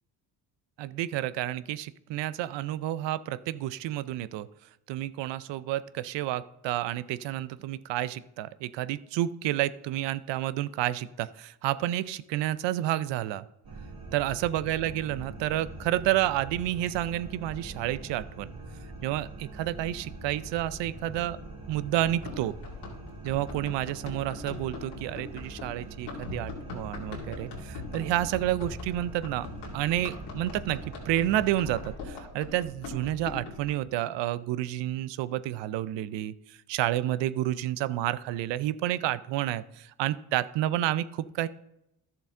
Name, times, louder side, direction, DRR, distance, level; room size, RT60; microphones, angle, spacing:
voice 1, 0.8-4.5 4.9-13.4 14.1-18.5 19.0-21.4 21.7-22.5 23.2-29.5 29.7-30.8 31.1-41.5, right 13 dB, 70° right, 16 dB, 0.6 m, -30 dB
sound 1, 13.6-32.0, right 2 dB, 50° right, 2.3 m, -43 dB
Run, 22.0-33.7, left 4 dB, 85° left, 2.6 m, -42 dB
11.5 x 6.9 x 3.7 m, 0.85 s
supercardioid pair, 70°, 45 cm